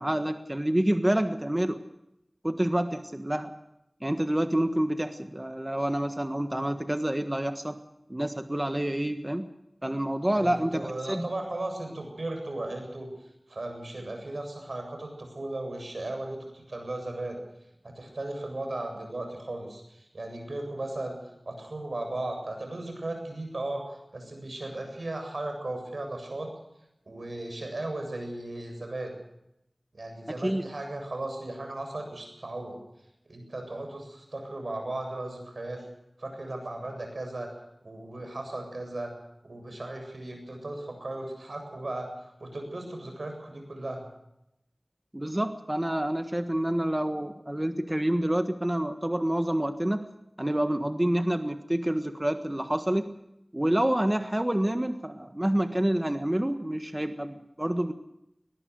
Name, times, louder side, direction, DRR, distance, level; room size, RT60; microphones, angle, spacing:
voice 1, 0.0-1.8 2.4-3.5 4.0-7.8 8.1-9.5 9.8-11.3 30.4-30.6 45.1-50.1 50.4-53.2 53.5-57.9, right 1 dB, 25° right, 8 dB, 1.5 m, -28 dB
voice 2, 10.3-13.1 13.5-17.4 17.8-21.2 21.4-26.5 27.1-29.1 29.9-32.8 33.3-35.8 36.2-37.5 37.8-39.1 39.4-42.1 42.4-44.0, right 2 dB, 85° right, 4 dB, 7.7 m, -36 dB
21.5 x 21.0 x 6.4 m, 0.83 s
wide cardioid pair, 45°, 0 cm